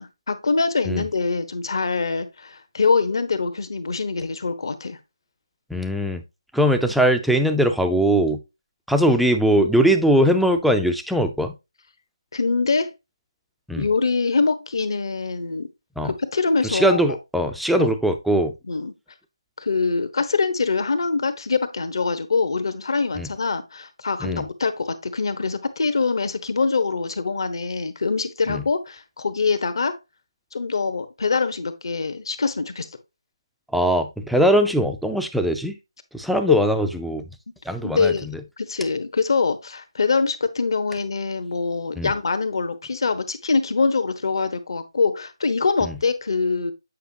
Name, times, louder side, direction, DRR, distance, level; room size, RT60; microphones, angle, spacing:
voice 1, 0.0-5.0 12.3-12.9 13.7-15.7 16.0-17.0 17.8-17.9 18.7-18.9 19.6-29.9 30.5-32.9 37.8-38.3 38.6-46.7, left 4 dB, 55° left, 1.1 m, -24 dB
voice 2, 5.7-6.2 6.5-8.4 8.9-11.5 13.7-13.8 16.0-16.1 16.6-18.5 23.1-23.3 24.2-24.4 28.5-28.6 33.7-35.8 36.1-37.2 37.7-38.4 42.0-42.1 45.8-45.9, right 1 dB, ahead, 0.4 m, -20 dB
8.4 x 5.1 x 2.8 m
figure-of-eight pair, 160°, 3 cm